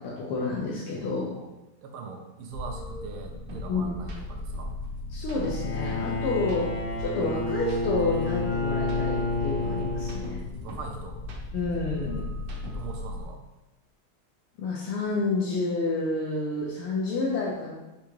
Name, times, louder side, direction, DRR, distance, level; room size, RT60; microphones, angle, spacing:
voice 1, 0.0-1.3 3.7-3.9 5.1-10.5 11.5-12.3 14.6-17.7, left 3 dB, 85° left, -5 dB, 1.6 m, -29 dB
voice 2, 1.0-1.5 1.8-4.8 10.6-11.2 12.0-12.3 12.7-13.4, right 4 dB, 85° right, 3 dB, 1.6 m, -41 dB
sound 1, 2.5-13.2, left 2 dB, 50° left, 0.8 m, -37 dB
sound 2, 3.5-3.6 4.0-4.2 4.5-6.1 6.4-8.5 8.8-10.9 11.2-13.0, equal, 65° right, 1.3 m, -42 dB
Bowed string instrument, 5.4-10.7, left 3 dB, 70° left, 1.1 m, -30 dB
5.0 x 3.4 x 3.2 m, 1.0 s
omnidirectional pair, 2.4 m